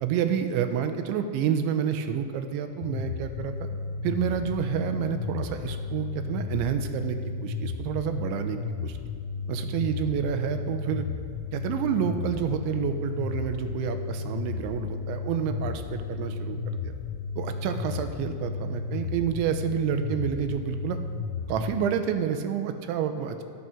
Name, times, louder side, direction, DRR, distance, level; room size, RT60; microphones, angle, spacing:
voice 1, 0.0-3.5 4.0-9.0 9.5-11.0 11.5-16.6 16.8-16.9 17.4-21.0 21.5-23.4, right 8 dB, 85° right, 8 dB, 3.1 m, -29 dB
sound 1, 2.8-21.8, left 5 dB, 80° left, 2.6 m, -34 dB
13.5 x 12.5 x 6.1 m, 2.5 s
omnidirectional pair, 5.4 m